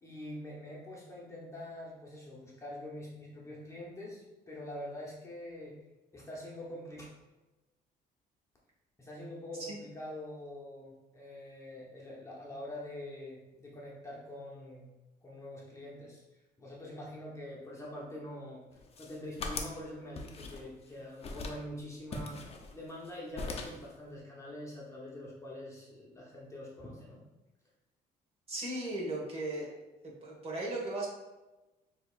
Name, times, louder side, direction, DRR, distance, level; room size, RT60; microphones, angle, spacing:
voice 1, 0.0-5.7 6.1-7.0 9.0-14.9 15.2-16.2 16.6-18.6 19.0-22.5 22.7-27.2, left 1 dB, 15° left, -4 dB, 1.0 m, -45 dB
sound 1, 18.8-19.8 20.2-20.9 21.2-21.6 22.1-23.1 23.3-23.9, left 3 dB, 35° left, 0.6 m, -40 dB
voice 2, 28.5-29.7 30.2-31.1, right 2 dB, 35° right, -3 dB, 1.5 m, -36 dB
6.5 x 3.0 x 2.4 m, 1.1 s
cardioid pair, 110°, 17 cm